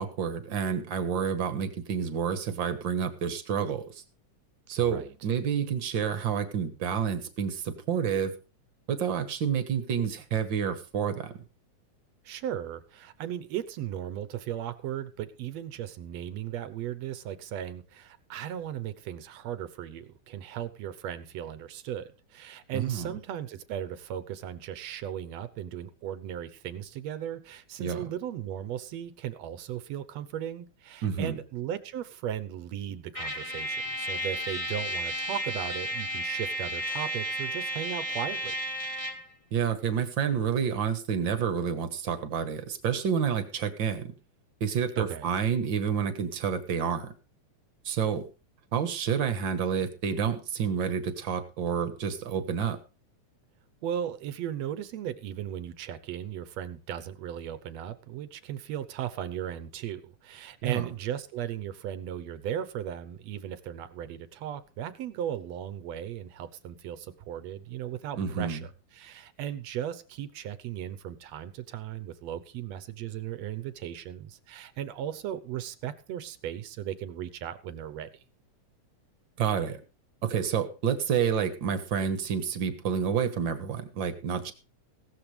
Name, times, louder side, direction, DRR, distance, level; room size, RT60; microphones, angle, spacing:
voice 1, 0.0-4.0 4.7-8.3 8.9-11.3 22.7-23.1 27.8-28.0 31.0-31.4 39.5-44.1 44.6-47.1 47.8-48.2 48.7-52.8 60.6-60.9 68.2-68.6 79.4-79.8 80.2-84.5, right 7 dB, 50° right, 9 dB, 1.7 m, -29 dB
voice 2, 4.8-5.1 12.3-38.6 45.0-45.3 53.8-78.1, right 10 dB, 70° right, 14 dB, 1.9 m, -37 dB
Trumpet, 33.1-39.3, equal, 15° left, 1.6 m, -33 dB
16.5 x 13.0 x 3.4 m, 0.33 s
omnidirectional pair, 3.4 m